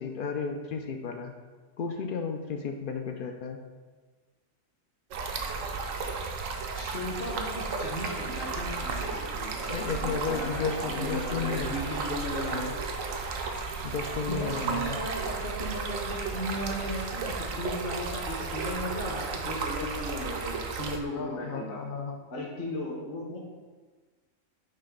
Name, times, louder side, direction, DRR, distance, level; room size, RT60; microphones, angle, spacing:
voice 1, 0.0-1.3 1.8-3.6 9.7-11.8 12.1-12.7 13.8-15.0 21.1-22.3, left 5 dB, 65° left, 5 dB, 0.5 m, -33 dB
Stream, 5.1-21.0, right 4 dB, 80° right, 1.1 m, -34 dB
voice 2, 6.7-12.7 14.3-21.8 22.3-23.4, equal, 45° left, -2 dB, 1.0 m, -36 dB
Trumpet, 7.6-15.8, right 2 dB, 35° right, 0.4 m, -50 dB
sound 1, 9.0-9.1 9.4-9.5 9.9-10.0 10.3-10.4 10.8-10.9 11.3-11.4 11.7-11.8 12.2-12.3 12.7-12.8 13.1-13.2 13.6-13.7 14.0-14.1, right 7 dB, 60° right, 0.7 m, -51 dB
5.8 x 3.2 x 5.1 m, 1.4 s
omnidirectional pair, 1.4 m